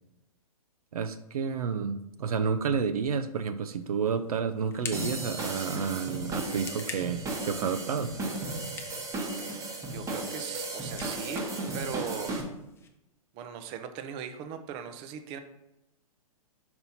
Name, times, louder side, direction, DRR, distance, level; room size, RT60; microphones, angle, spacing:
voice 1, 0.9-8.1, right 6 dB, 75° right, 10 dB, 0.5 m, -30 dB
sound 1, 3.7-12.9, left 5 dB, 15° left, 0.6 m, -48 dB
sound 2, 4.9-12.4, right 2 dB, 15° right, 1.0 m, -35 dB
voice 2, 9.9-11.5 11.7-12.3 13.3-15.4, right 8 dB, 30° right, 8 dB, 0.6 m, -39 dB
5.5 x 4.4 x 4.1 m, 0.90 s
hypercardioid pair, 120°, 19 cm